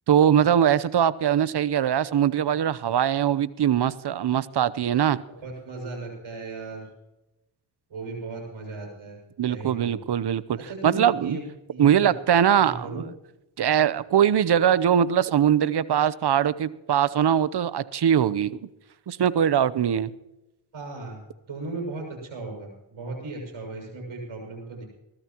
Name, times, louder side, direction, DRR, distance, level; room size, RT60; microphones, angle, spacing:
voice 1, 0.1-5.2 9.4-10.6 10.8-11.4 11.8-13.1 13.6-18.7 19.1-20.1, right 9 dB, 50° right, 17 dB, 0.9 m, -22 dB
voice 2, 5.3-6.9 7.9-9.2 9.5-10.0 10.6-11.4 11.7-12.1 12.6-13.0 20.7-24.8, right 3 dB, 70° right, 2 dB, 6.8 m, -36 dB
22.0 x 13.0 x 3.0 m, 0.95 s
supercardioid pair, 50°, 50 cm